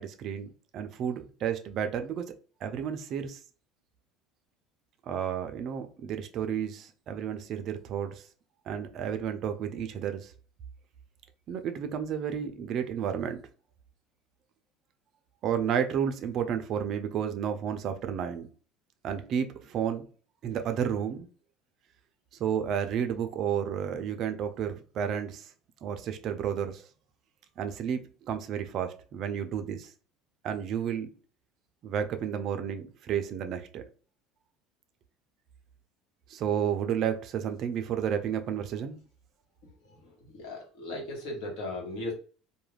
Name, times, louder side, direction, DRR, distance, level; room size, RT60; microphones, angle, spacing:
voice 1, 0.0-2.3 2.6-3.4 5.1-8.3 8.7-10.3 11.5-13.4 15.4-18.5 19.0-20.1 20.4-21.3 22.4-25.5 25.8-26.9 27.6-29.9 30.4-31.1 31.8-33.8 36.3-39.0, right 8 dB, 45° right, 0.4 m, -31 dB
voice 2, 40.3-42.1, left 2 dB, 75° left, 1.1 m, -36 dB
2.3 x 2.2 x 3.2 m
cardioid pair, 155°, 0 cm